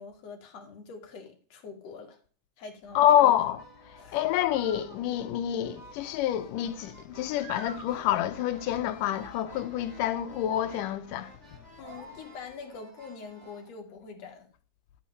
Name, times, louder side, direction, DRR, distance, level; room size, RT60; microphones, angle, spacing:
voice 1, 0.0-2.2 2.6-3.0 4.0-4.2 11.8-14.5, left 5 dB, 55° left, 2.8 m, -44 dB
voice 2, 3.0-3.6 4.1-11.3, left 11 dB, 85° left, 2.4 m, -27 dB
sound 1, 3.1-13.7, right 1 dB, 20° right, 3.1 m, -50 dB
12.5 x 8.9 x 3.2 m
omnidirectional pair, 3.7 m